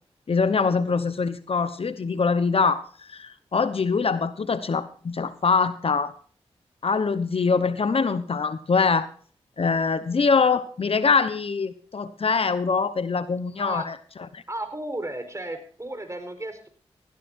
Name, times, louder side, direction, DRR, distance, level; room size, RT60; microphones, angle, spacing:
voice 1, 0.3-6.1 6.8-9.1 9.6-13.9 14.3-14.4, left 5 dB, 60° left, 13 dB, 1.1 m, -23 dB
voice 2, 13.6-13.9 14.5-16.7, right 1 dB, 25° right, 8 dB, 4.6 m, -34 dB
17.5 x 16.5 x 2.7 m, 0.43 s
cardioid pair, 45°, 11 cm